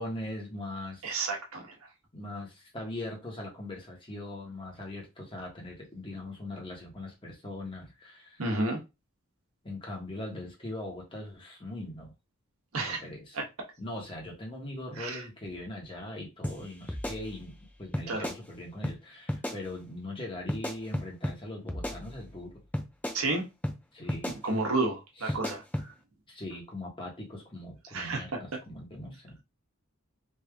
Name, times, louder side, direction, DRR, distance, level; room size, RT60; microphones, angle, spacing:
voice 1, 0.0-1.0 2.1-8.4 9.6-12.1 12.9-13.4 13.8-22.5 23.9-24.4 25.2-25.4 26.3-29.4, left 1 dB, 25° left, 1.3 m, -40 dB
voice 2, 1.0-1.6 8.4-8.8 12.7-13.0 13.3-13.4 15.0-15.2 18.1-18.3 23.1-23.4 24.4-25.6 27.9-28.2, right 2 dB, 80° right, 1.2 m, -30 dB
sound 1, 16.4-16.6 16.9-17.6 17.9-18.4 18.8-19.0 19.3-19.6 20.5-21.4 21.7-22.4 22.7-23.2 23.6-23.8 24.1-24.4 25.3-25.9, left 1 dB, 5° left, 0.5 m, -33 dB
3.3 x 2.7 x 3.5 m
head